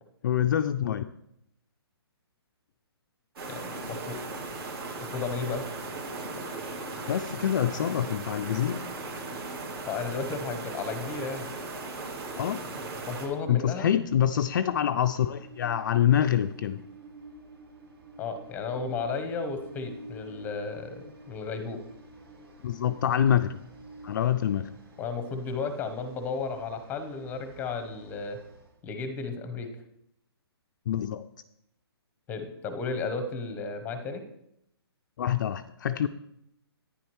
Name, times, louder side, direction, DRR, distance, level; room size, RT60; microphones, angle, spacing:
voice 1, 0.2-1.0 7.1-8.8 12.4-12.6 13.5-16.8 22.6-23.6 24.0-24.7 30.9-31.2 35.2-36.1, left 10 dB, 45° left, 9 dB, 0.4 m, -26 dB
sound 1, 3.4-13.3, right 3 dB, 60° right, 2.6 m, -37 dB
voice 2, 3.9-4.2 4.5-4.6 5.0-5.6 9.9-11.5 13.1-13.9 18.2-21.8 25.0-28.4 28.8-29.7 32.3-34.2, left 4 dB, 15° left, 8 dB, 0.9 m, -34 dB
Train, 9.3-28.8, right 1 dB, 75° right, 4.1 m, -51 dB
10.5 x 9.7 x 3.1 m, 0.78 s
hypercardioid pair, 155°, 14 cm